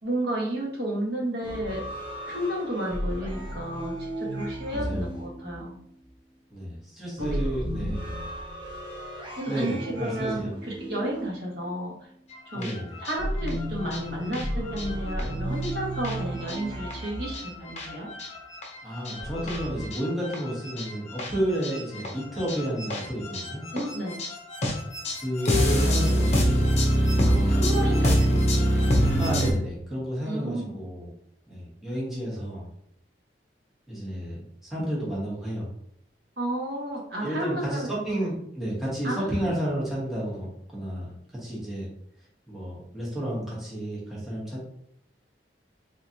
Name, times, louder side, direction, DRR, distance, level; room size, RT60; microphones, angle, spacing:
voice 1, 0.0-1.8 2.3-5.8 7.2-7.4 7.9-8.0 9.4-12.1 12.5-12.7 13.0-18.1 23.7-24.2 27.3-29.0 30.2-30.8 36.4-38.3 39.0-39.6, right 1 dB, 65° right, -2 dB, 1.3 m, -32 dB
sound 1, 1.4-6.0 7.2-12.0 13.2-17.8 19.2-19.8, equal, 25° right, 0.9 m, -34 dB
voice 2, 4.7-5.1 6.5-8.0 9.5-10.5 12.5-12.9 18.8-23.6 25.2-26.7 27.2-27.6 29.2-31.1 31.5-32.7 33.9-34.4 34.7-35.7 37.2-41.9 42.5-44.6, right 1 dB, ahead, -8 dB, 1.4 m, -31 dB
sound 2, 12.3-29.5, equal, 40° left, 0.8 m, -25 dB
3.8 x 3.3 x 2.8 m, 0.70 s
head